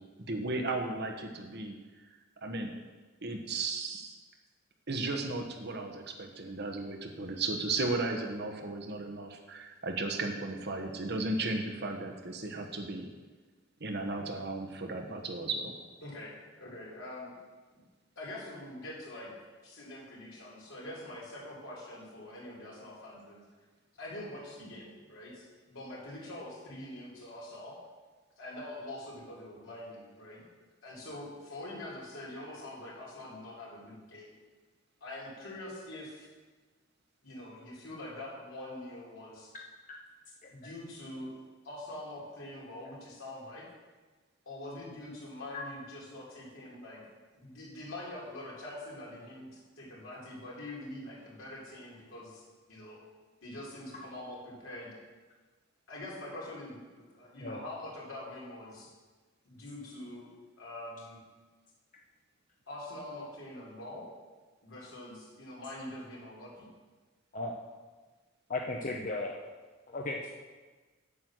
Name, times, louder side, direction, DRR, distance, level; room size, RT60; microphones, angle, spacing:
voice 1, 0.3-1.7 2.4-2.7 3.2-4.2 4.9-13.1 13.8-15.7, right 3 dB, 55° right, 3 dB, 1.3 m, -35 dB
voice 2, 16.0-17.3 17.7-17.8 18.2-19.3 19.6-23.4 24.0-27.8 28.4-30.4 30.8-34.3 35.0-36.3 37.2-39.5 40.5-41.3 41.6-43.6 44.5-47.0 47.3-52.4 52.7-53.0 53.4-54.9 55.9-58.9 59.5-60.3 60.6-61.2 62.7-64.0 64.6-66.5, left 1 dB, 80° left, -5 dB, 3.7 m, -44 dB
voice 3, 68.5-69.3 69.9-70.4, left 2 dB, 40° left, -1 dB, 0.8 m, -35 dB
8.6 x 8.3 x 6.2 m, 1.3 s
head